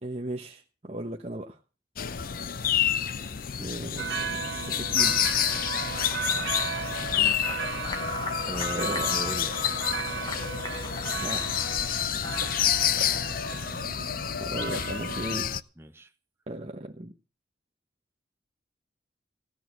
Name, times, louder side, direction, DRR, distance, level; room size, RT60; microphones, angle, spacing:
voice 1, 0.0-1.6 3.6-5.3 8.7-9.1 11.2-11.7 14.4-15.6 16.5-17.1, right 1 dB, 35° right, 1.0 m, -36 dB
sound 1, 2.0-15.6, left 9 dB, 50° left, 0.6 m, -29 dB
sound 2, 4.0-15.4, right 7 dB, 80° right, 0.8 m, -36 dB
Applause, 5.4-13.2, left 3 dB, 25° left, 1.3 m, -42 dB
voice 2, 8.4-9.6 13.0-13.3 14.2-14.7 15.8-16.1, right 1 dB, 15° right, 0.9 m, -39 dB
16.5 x 6.3 x 8.3 m
head